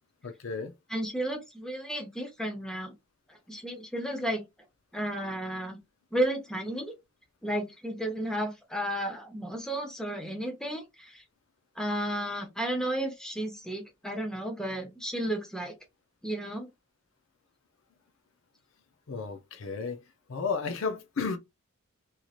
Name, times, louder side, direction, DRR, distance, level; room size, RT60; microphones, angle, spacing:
voice 1, 0.2-0.7 19.1-20.0 20.3-21.4, left 5 dB, 60° left, 0.5 m, -33 dB
voice 2, 0.9-2.9 3.3-4.4 4.9-5.8 6.1-6.9 7.4-11.2 11.8-15.7 16.2-16.7, right 1 dB, 5° left, 0.7 m, -33 dB
3.0 x 2.7 x 2.4 m
head